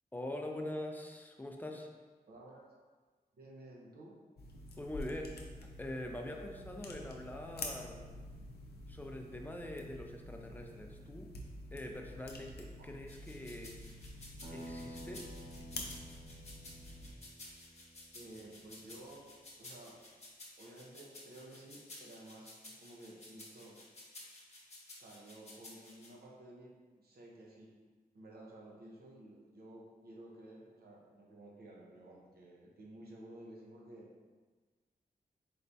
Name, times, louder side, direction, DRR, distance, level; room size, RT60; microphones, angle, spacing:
voice 1, 0.1-1.9 4.8-8.1 8.9-11.3 11.7-13.8 14.5-15.2, left 1 dB, 10° left, 2 dB, 0.4 m, -44 dB
voice 2, 2.3-2.7 3.3-4.2 12.8-12.9 18.1-19.2 19.6-20.0 20.6-23.8 24.9-27.7 28.1-34.1, right 1 dB, 75° right, -2 dB, 0.8 m, -53 dB
sound 1, 4.4-17.1, left 2 dB, 90° left, 0.5 m, -48 dB
sound 2, 13.1-26.1, left 1 dB, 40° left, 0.9 m, -54 dB
Acoustic guitar, 14.4-19.3, right 1 dB, 50° right, 1.0 m, -52 dB
4.2 x 3.3 x 2.6 m, 1.4 s
wide cardioid pair, 135°, 16 cm